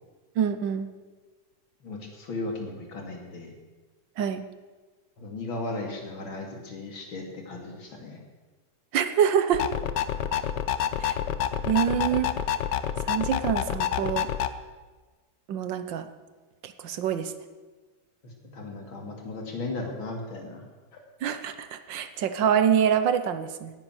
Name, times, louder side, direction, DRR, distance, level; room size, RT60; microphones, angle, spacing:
voice 1, 0.4-0.9 4.2-4.4 8.9-9.6 11.0-11.2 11.7-12.3 13.1-14.3 15.5-16.1 16.6-17.3 21.2-23.7, right 8 dB, 70° right, 10 dB, 1.6 m, -25 dB
voice 2, 1.8-3.5 5.2-8.2 18.2-20.6 20.9-21.0, left 2 dB, 85° left, 2 dB, 3.3 m, -36 dB
sound 1, 9.5-14.5, left 9 dB, 70° left, 1.3 m, -28 dB
17.5 x 10.5 x 6.4 m, 1.3 s
omnidirectional pair, 2.1 m